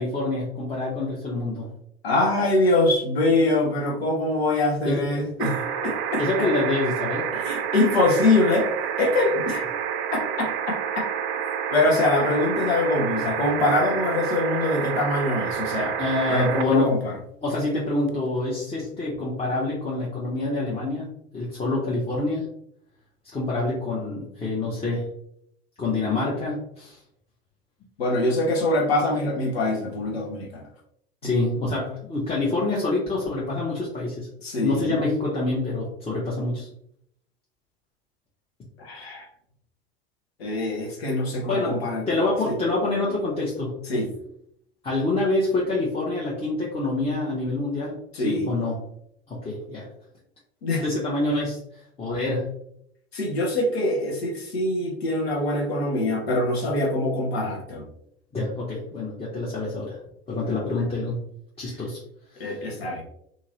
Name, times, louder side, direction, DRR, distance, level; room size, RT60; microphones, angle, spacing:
voice 1, 0.0-1.7 4.8-5.0 6.2-7.3 16.0-17.0 17.4-21.1 21.3-22.5 23.3-25.1 25.8-27.0 31.2-34.3 34.6-36.7 41.5-41.8 42.1-43.8 44.8-48.8 49.3-49.9 50.8-51.6 52.0-52.5 58.3-60.0 60.3-61.2 61.6-62.0 62.3-62.5, left 2 dB, 20° left, -5 dB, 0.8 m, -26 dB
voice 2, 2.0-6.2 7.3-8.7 9.0-9.7 10.1-10.5 10.9-11.0 11.7-15.9 16.3-17.1 28.0-30.6 34.4-35.0 38.8-39.3 40.4-42.0 42.5-42.6 43.9-44.1 48.1-48.5 50.6-50.8 53.1-57.8 60.5-60.7 62.4-63.0, left 2 dB, 80° left, -1 dB, 0.9 m, -24 dB
sound 1, 5.4-16.6 18.1-18.2, right 8 dB, 45° right, 0.5 m, -29 dB
2.8 x 2.6 x 2.8 m, 0.73 s
figure-of-eight pair, 75°, 31 cm